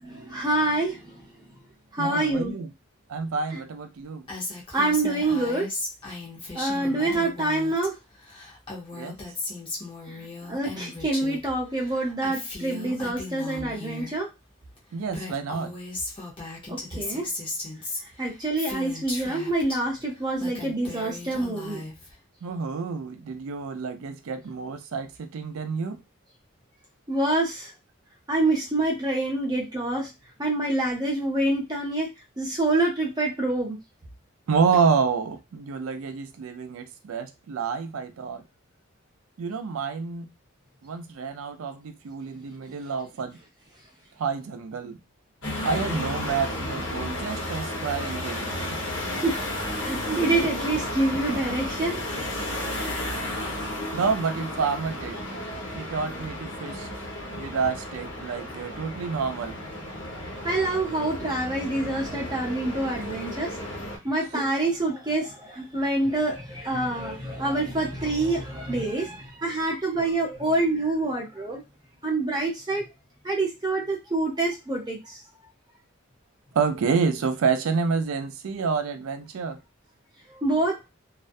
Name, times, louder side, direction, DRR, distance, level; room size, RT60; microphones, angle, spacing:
voice 1, 0.0-1.1 1.9-2.5 3.5-3.6 4.7-5.7 6.5-7.9 10.1-10.2 10.5-14.3 16.7-17.3 18.2-21.8 27.1-27.7 28.3-30.1 30.4-32.1 32.4-33.8 49.2-49.3 49.7-52.0 60.4-63.6 64.0-71.6 72.0-72.8 73.2-75.2 80.3-80.8, right 2 dB, 20° right, 0.7 m, -26 dB
voice 2, 2.0-2.7 3.1-4.2 6.8-7.3 9.0-9.2 14.9-15.7 22.4-26.0 34.5-38.4 39.4-40.3 40.8-43.4 44.2-45.0 45.6-48.8 53.9-55.2 55.7-56.9 57.3-59.5 76.5-79.6, right 5 dB, 85° right, 0.4 m, -28 dB
Female speech woman speaking, 4.3-7.9 8.1-11.5 11.7-14.1 14.8-14.9 15.1-19.8 20.2-22.1, left 2 dB, 25° left, 0.7 m, -36 dB
sound 1, 45.4-64.0, left 1 dB, 60° left, 1.1 m, -33 dB
2.3 x 2.2 x 2.5 m
head